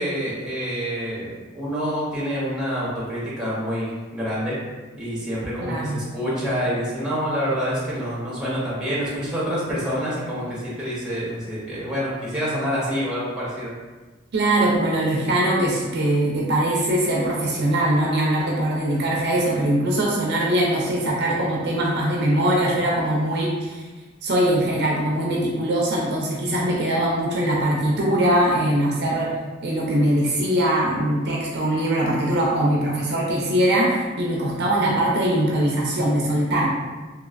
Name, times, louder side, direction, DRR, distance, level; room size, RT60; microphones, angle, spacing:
voice 1, 0.0-4.6 5.0-13.7, equal, 5° right, -8 dB, 1.0 m, -27 dB
voice 2, 5.6-6.0 14.3-23.9 24.2-29.3 29.6-36.7, right 1 dB, 55° right, -3 dB, 0.5 m, -21 dB
3.0 x 2.8 x 2.5 m, 1.3 s
head